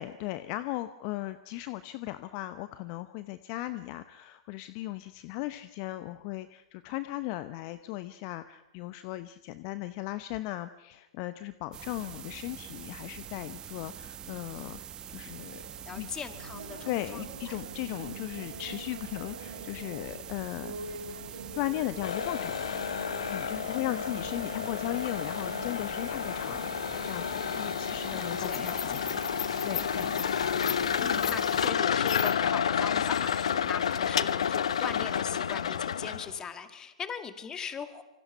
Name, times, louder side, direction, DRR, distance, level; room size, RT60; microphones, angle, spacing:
voice 1, 0.0-14.8 15.1-15.6 15.9-16.1 16.8-21.0 21.5-22.7 23.3-30.2, left 16 dB, 40° left, 12 dB, 0.9 m, -37 dB
sound 1, 11.7-31.7, right 9 dB, 20° right, 1.4 m, -44 dB
sound 2, 15.4-33.8, right 2 dB, 70° right, 7.8 m, -46 dB
voice 2, 15.9-17.6 23.7-24.3 24.9-25.0 28.1-29.1 31.0-38.0, left 7 dB, 20° left, 9 dB, 2.2 m, -40 dB
sound 3, 22.0-36.4, left 8 dB, 70° left, 1.0 m, -30 dB
26.5 x 25.0 x 5.7 m, 1.1 s
figure-of-eight pair, 110°, 3 cm